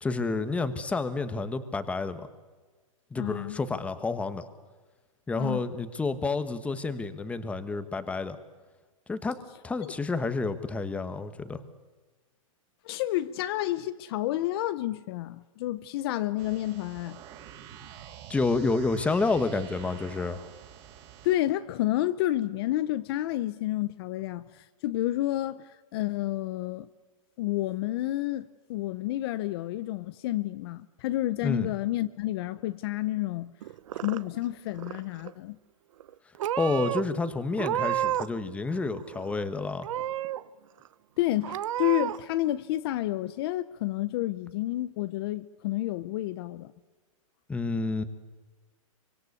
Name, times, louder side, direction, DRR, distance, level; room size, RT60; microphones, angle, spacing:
voice 1, 0.0-2.3 3.1-4.5 5.3-8.4 9.1-9.4 9.6-11.6 18.3-20.4 31.4-31.7 36.6-39.9 47.5-48.0, left 3 dB, 5° left, 1.2 m, -29 dB
voice 2, 3.2-3.6 5.4-5.6 9.8-9.9 12.8-17.2 21.2-26.9 27.4-33.5 34.0-35.6 41.2-46.7, left 15 dB, 45° left, 0.8 m, -30 dB
sound 1, 16.4-21.3, right 10 dB, 35° right, 4.5 m, -47 dB
Purr / Meow, 33.6-34.5 34.8-35.3 36.0-36.1 36.4-37.0 37.5-38.4 38.7-39.4 39.8-40.4 40.9-41.0 41.4-42.2, right 12 dB, 65° right, 0.8 m, -31 dB
25.0 x 24.5 x 8.4 m
hypercardioid pair, 150°, 18 cm